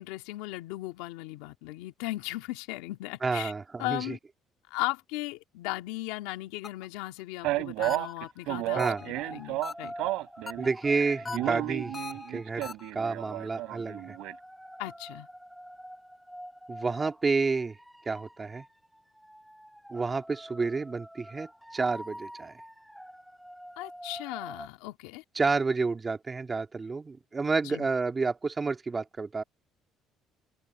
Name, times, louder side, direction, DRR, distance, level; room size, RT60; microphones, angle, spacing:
voice 1, 0.0-3.5 3.8-4.2 4.7-9.9 14.8-15.3 23.8-25.2 27.6-27.8, left 19 dB, 90° left, 2.1 m, -37 dB
voice 2, 3.2-4.2 8.7-9.0 10.6-12.0 12.3-14.2 16.7-17.8 18.1-18.6 19.9-22.6 25.3-29.4, right 4 dB, 30° right, 2.4 m, -30 dB
sound 1, 6.6-7.0 7.8-8.3 8.8-9.2 9.6-10.1 10.5-10.9 11.2-12.9, left 4 dB, 30° left, 2.7 m, -40 dB
Male speech man speaking, 7.4-10.7 10.9-14.3, right 18 dB, 80° right, 3.9 m, -32 dB
sound 2, 9.0-24.7, equal, ahead, 5.7 m, -46 dB
open air
supercardioid pair, 75°, 0 cm